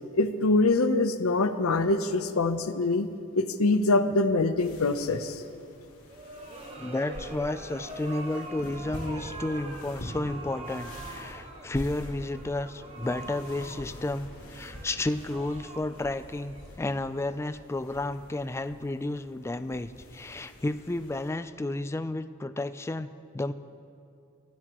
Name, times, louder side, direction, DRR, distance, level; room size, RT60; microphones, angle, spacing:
voice 1, 0.1-3.1 3.3-5.4, left 2 dB, 85° left, 10 dB, 0.7 m, -24 dB
sound 1, 4.6-21.3, equal, 65° left, 3.3 m, -46 dB
sound 2, 6.1-17.1, right 2 dB, 30° right, 1.1 m, -44 dB
voice 2, 6.8-23.5, left 2 dB, 10° left, 12 dB, 0.3 m, -32 dB
24.0 x 12.5 x 3.0 m, 2.5 s
head